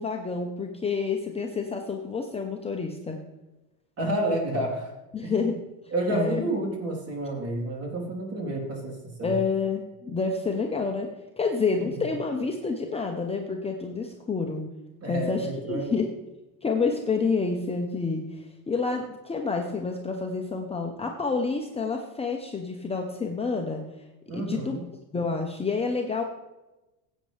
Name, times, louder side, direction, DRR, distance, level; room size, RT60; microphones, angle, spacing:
voice 1, 0.0-3.2 5.1-5.6 6.1-6.4 9.2-14.7 15.1-16.1 16.6-23.8 24.3-24.8 25.1-26.2, left 4 dB, 15° left, 2 dB, 0.9 m, -28 dB
voice 2, 4.0-4.9 5.2-5.5 5.9-9.4 11.8-11.9 15.0-15.9 24.3-24.8, right 1 dB, 35° right, -1 dB, 3.7 m, -30 dB
15.0 x 8.5 x 3.4 m, 1.0 s
supercardioid pair, 110°, 42 cm